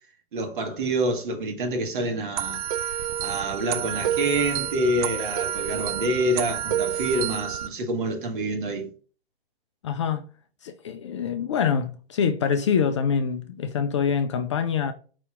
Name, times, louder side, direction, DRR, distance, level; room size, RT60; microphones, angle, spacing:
voice 1, 0.3-2.6 3.2-8.9, right 1 dB, 55° right, 1.4 m, -27 dB
sound 1, 2.4-7.7, right 10 dB, 40° right, 0.4 m, -29 dB
voice 2, 9.8-10.2 10.6-14.9, left 6 dB, 30° left, 0.3 m, -25 dB
5.0 x 2.7 x 3.5 m
figure-of-eight pair, 115°, 31 cm